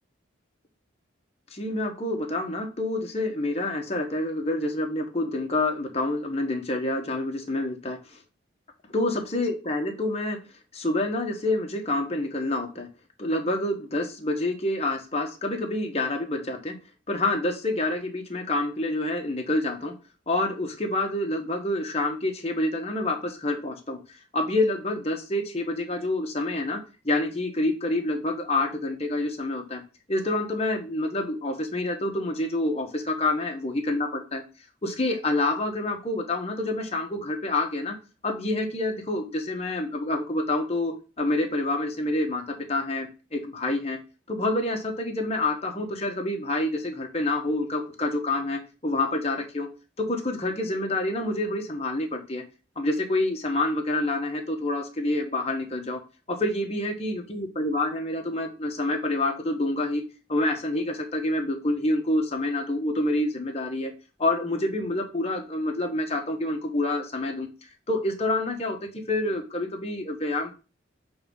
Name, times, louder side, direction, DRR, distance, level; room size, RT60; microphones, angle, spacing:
voice 1, 1.5-8.2 8.9-10.4 10.7-12.9 13.2-16.8 17.1-19.9 20.3-24.0 24.3-29.8 30.1-34.4 34.8-38.0 38.2-42.4 42.7-44.0 44.3-49.7 50.0-52.4 52.8-56.0 56.3-60.0 60.3-63.9 64.2-67.5 67.9-68.8 69.1-70.5, left 2 dB, 30° left, 3 dB, 1.3 m, -27 dB
6.9 x 3.5 x 5.5 m, 0.33 s
head